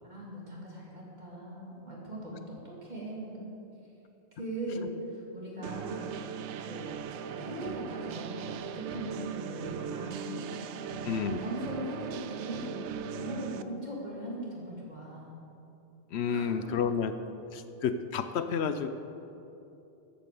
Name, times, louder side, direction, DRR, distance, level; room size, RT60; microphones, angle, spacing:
voice 1, 0.0-3.4 4.4-15.4 16.2-16.8, right 1 dB, 40° right, -5 dB, 3.2 m, -40 dB
sound 1, 5.6-13.6, right 8 dB, 85° right, 0.9 m, -39 dB
voice 2, 11.0-11.4 16.1-17.1 17.5-18.9, left 6 dB, 75° left, 10 dB, 0.9 m, -30 dB
13.5 x 8.6 x 7.0 m, 2.8 s
omnidirectional pair, 1.1 m